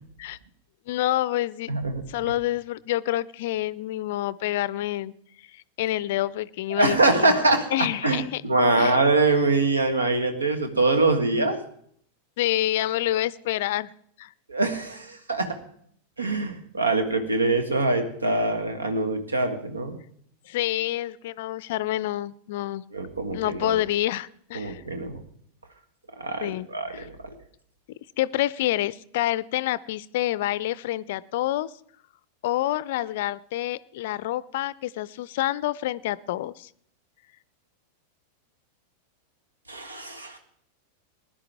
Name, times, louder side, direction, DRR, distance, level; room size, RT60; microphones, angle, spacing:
voice 1, 0.9-1.7 2.1-5.1 5.8-7.3 7.7-8.4 8.8-9.0 12.4-13.9 14.2-14.3 20.5-22.8 23.3-24.8 26.4-27.1 28.2-31.7 32.4-36.7, left 14 dB, 55° left, 21 dB, 0.4 m, -27 dB
voice 2, 1.7-2.0 6.8-11.6 14.5-15.6 16.2-20.0 22.9-23.8 24.5-25.2 26.2-27.3 39.7-40.4, right 2 dB, 75° right, 8 dB, 1.7 m, -24 dB
20.0 x 11.0 x 3.5 m, 0.65 s
figure-of-eight pair, 90°, 0 cm